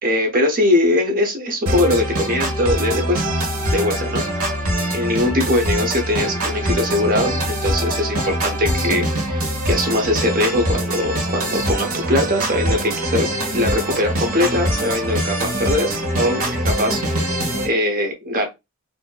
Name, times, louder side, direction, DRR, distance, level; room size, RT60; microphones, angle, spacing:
voice 1, 0.0-3.2 3.7-4.2 4.9-17.0 17.3-18.5, left 1 dB, 40° right, 4 dB, 1.0 m, -21 dB
sound 1, 1.7-17.7, right 1 dB, 70° right, 1.4 m, -23 dB
4.3 x 2.7 x 2.3 m, 0.22 s
head